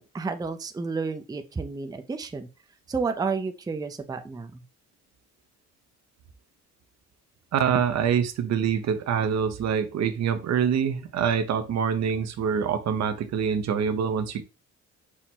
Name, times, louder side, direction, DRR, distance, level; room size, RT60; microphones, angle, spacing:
voice 1, 0.0-2.5 2.9-4.6, right 4 dB, 15° right, 7 dB, 0.5 m, -31 dB
voice 2, 7.5-14.4, right 7 dB, 60° right, 8 dB, 0.8 m, -25 dB
5.9 x 2.1 x 4.3 m, 0.30 s
cardioid pair, 90°, 30 cm